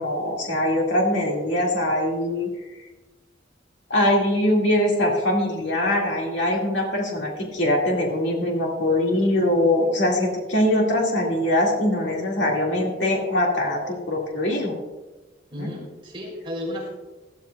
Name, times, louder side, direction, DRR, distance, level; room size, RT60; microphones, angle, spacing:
voice 1, 0.0-2.5 3.9-14.7 15.6-15.7, left 1 dB, 75° left, -1 dB, 2.0 m, -22 dB
voice 2, 15.5-16.9, left 1 dB, 30° right, -3 dB, 2.9 m, -33 dB
14.5 x 13.0 x 2.3 m, 1.1 s
head